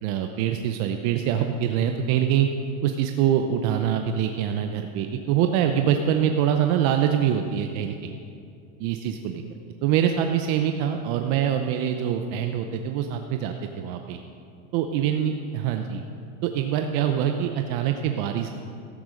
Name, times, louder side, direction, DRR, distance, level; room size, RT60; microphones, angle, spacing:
voice 1, 0.0-2.5 2.8-8.1 8.8-9.4 9.8-14.2 14.7-16.0 16.4-18.5, right 9 dB, 45° right, 5 dB, 0.7 m, -24 dB
13.5 x 9.4 x 5.0 m, 2.5 s
supercardioid pair, 140°, 41 cm